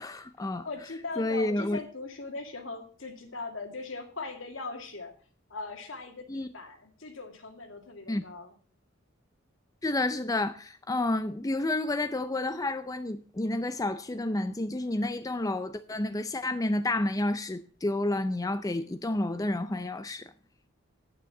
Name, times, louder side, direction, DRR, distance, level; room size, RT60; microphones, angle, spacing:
voice 1, 0.0-0.7 1.2-1.8 6.3-6.5 8.1-8.2 9.8-20.3, left 2 dB, 15° left, 0.5 m, -30 dB
voice 2, 0.6-5.1 5.5-8.5, left 3 dB, 70° left, 2.3 m, -40 dB
9.7 x 9.2 x 5.9 m
head